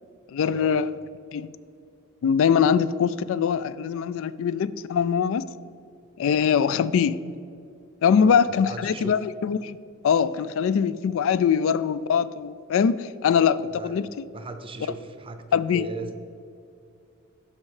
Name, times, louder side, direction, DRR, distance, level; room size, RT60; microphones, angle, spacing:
voice 1, 0.3-0.9 1.3-1.5 2.2-5.4 6.2-7.2 8.0-9.8 10.0-14.1 15.5-15.9, left 7 dB, 65° left, 0.3 m, -22 dB
voice 2, 8.1-9.1 13.7-13.9 14.3-16.2, right 3 dB, 25° right, 0.6 m, -38 dB
12.0 x 4.3 x 4.8 m
head